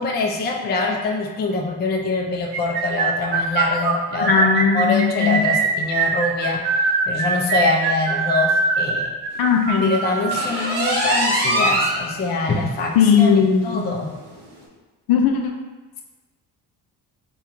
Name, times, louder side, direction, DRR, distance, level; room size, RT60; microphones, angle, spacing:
voice 1, 0.0-4.5 4.7-9.1 9.8-13.3 13.6-14.1, left 3 dB, 25° left, 0 dB, 0.4 m, -24 dB
sound 1, 2.5-10.6, right 5 dB, 90° right, 0.5 m, -22 dB
voice 2, 4.3-5.4 9.4-9.9 13.0-13.8 15.1-15.5, left 7 dB, 70° left, 3 dB, 0.6 m, -17 dB
sound 2, 10.3-12.0 12.5-12.6 13.0-13.1 13.5-13.6 14.5-14.6, right 1 dB, 25° right, 1.1 m, -21 dB
4.4 x 2.3 x 3.5 m, 1.2 s
cardioid pair, 130°, 39 cm